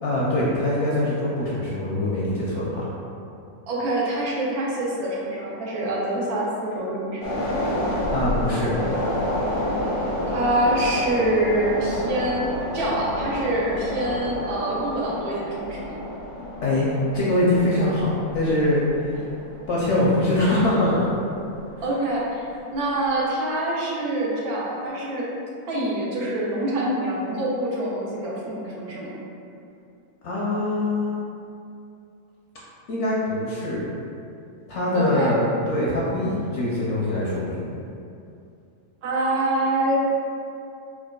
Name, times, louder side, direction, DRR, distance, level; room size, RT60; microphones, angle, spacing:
voice 1, 0.0-2.8 8.1-8.7 16.6-19.2 19.7-21.1 30.2-31.2 32.9-33.8 34.7-37.7, left 1 dB, 65° left, -6 dB, 0.7 m, -23 dB
voice 2, 3.7-7.3 10.3-12.4 12.7-16.0 21.8-25.3 25.7-29.1 34.9-35.4 39.0-40.0, right 1 dB, 80° right, -5 dB, 1.2 m, -25 dB
sound 1, 7.2-21.8 22.1-22.3, left 1 dB, 85° left, 1.2 m, -29 dB
4.3 x 2.2 x 2.2 m, 2.6 s
omnidirectional pair, 1.6 m